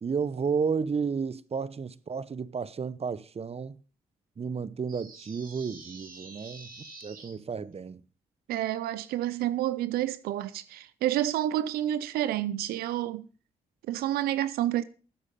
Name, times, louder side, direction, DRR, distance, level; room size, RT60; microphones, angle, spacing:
voice 1, 0.0-3.8 4.4-8.0, right 5 dB, 40° right, 0.9 m, -32 dB
sound 1, 4.9-7.3, right 3 dB, 65° right, 4.2 m, -47 dB
voice 2, 8.5-13.3 13.9-14.8, right 13 dB, 90° right, 0.5 m, -29 dB
14.5 x 8.2 x 5.3 m
supercardioid pair, 50°, 15 cm